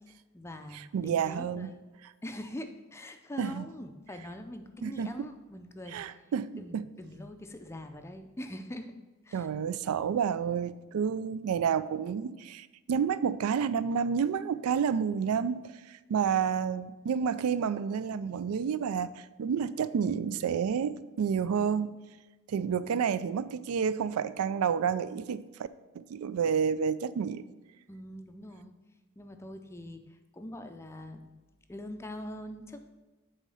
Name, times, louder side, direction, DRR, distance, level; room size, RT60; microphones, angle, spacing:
voice 1, 0.3-1.8 2.2-8.9 9.2-9.5 27.9-28.7 29.2-31.3 31.7-32.9, left 1 dB, 10° left, 6 dB, 0.4 m, -43 dB
voice 2, 0.9-1.7 3.4-3.6 4.8-5.1 5.9-6.9 9.3-21.9 22.5-25.4 25.9-27.4, right 7 dB, 90° right, 16 dB, 0.3 m, -30 dB
8.3 x 3.7 x 5.5 m, 1.2 s
head